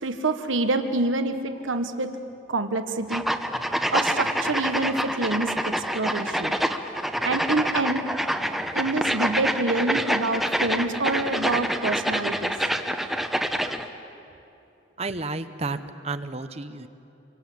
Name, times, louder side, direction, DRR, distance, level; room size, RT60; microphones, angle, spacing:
voice 1, 0.0-2.1 2.5-3.2 3.9-6.5 7.2-8.0 8.7-12.5, right 2 dB, 85° right, 7 dB, 1.3 m, -26 dB
sound 1, 3.1-13.9, equal, ahead, 0.9 m, -26 dB
voice 2, 15.0-16.9, right 3 dB, 30° right, 10 dB, 0.8 m, -32 dB
28.5 x 24.5 x 8.6 m, 2.8 s
head